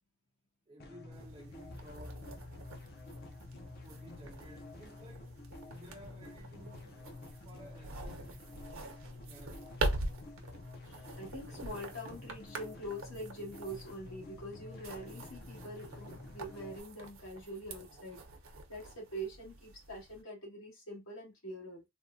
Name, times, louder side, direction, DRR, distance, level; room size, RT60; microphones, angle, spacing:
voice 1, 0.7-2.4 2.7-2.8 3.8-7.1 7.4-8.5 9.3-10.0, equal, 25° right, 0.4 m, -55 dB
sound 1, 0.8-16.8, left 2 dB, 45° left, 0.5 m, -50 dB
sound 2, 1.1-20.2, right 2 dB, 70° right, 0.7 m, -44 dB
voice 2, 10.9-18.2 18.7-21.8, right 1 dB, 75° left, 1.8 m, -44 dB
3.3 x 2.1 x 2.5 m
head